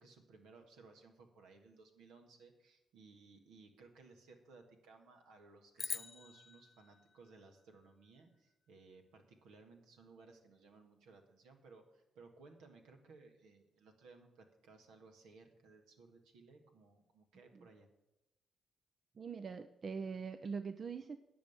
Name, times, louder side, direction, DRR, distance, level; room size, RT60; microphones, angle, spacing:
voice 1, 0.0-17.9, right 4 dB, 85° right, 3 dB, 1.7 m, -60 dB
sound 1, 5.8-8.2, left 4 dB, 45° left, 0.3 m, -46 dB
voice 2, 19.2-21.2, right 5 dB, 50° right, 10 dB, 0.6 m, -43 dB
10.5 x 6.3 x 8.7 m, 0.94 s
supercardioid pair, 50°, 0 cm